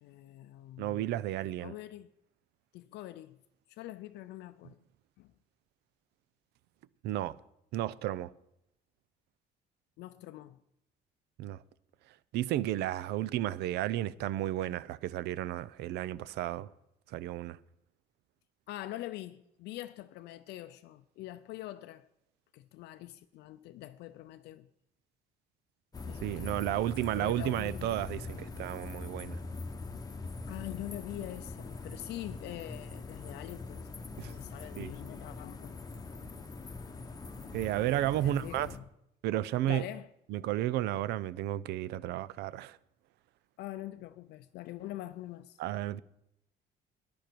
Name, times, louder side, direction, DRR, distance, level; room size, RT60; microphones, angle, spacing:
voice 1, 0.0-1.1 1.6-2.1 2.7-3.4 3.7-4.8 5.2-5.3 10.0-10.6 18.7-22.1 22.5-24.7 26.0-27.9 30.5-33.8 34.1-35.8 38.2-38.9 39.7-40.1 43.6-45.6, left 15 dB, 80° left, 0.5 m, -44 dB
voice 2, 0.8-1.7 7.0-7.4 7.7-8.3 11.4-11.6 12.3-16.7 17.1-17.6 26.2-29.4 34.2-34.3 34.8-34.9 37.5-38.7 39.2-39.8 40.3-42.8 45.6-46.0, right 14 dB, 80° right, 0.5 m, -33 dB
sound 1, 25.9-38.8, left 3 dB, 20° left, 1.0 m, -43 dB
13.5 x 10.5 x 4.6 m
cardioid pair, 110°, 17 cm